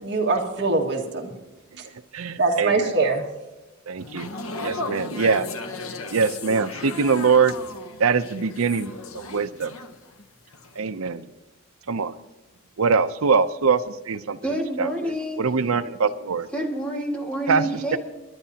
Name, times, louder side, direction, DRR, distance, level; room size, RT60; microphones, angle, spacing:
voice 1, 0.0-1.3 2.4-3.2, right 3 dB, 55° right, 0 dB, 1.9 m, -23 dB
voice 2, 2.1-2.9 3.9-4.3 4.6-5.5 6.1-7.5 8.0-9.7 10.8-11.3 11.9-12.1 12.8-14.4 14.8-15.1 15.4-16.5 17.5-17.6 17.9-18.0, right 5 dB, 85° right, 12 dB, 0.6 m, -23 dB
sound 1, 4.0-10.2 10.5-10.8, left 2 dB, 80° left, 1.1 m, -35 dB
voice 3, 14.4-15.4 16.5-18.0, right 1 dB, 5° left, 0 dB, 1.9 m, -28 dB
29.0 x 11.0 x 2.8 m, 1.1 s
head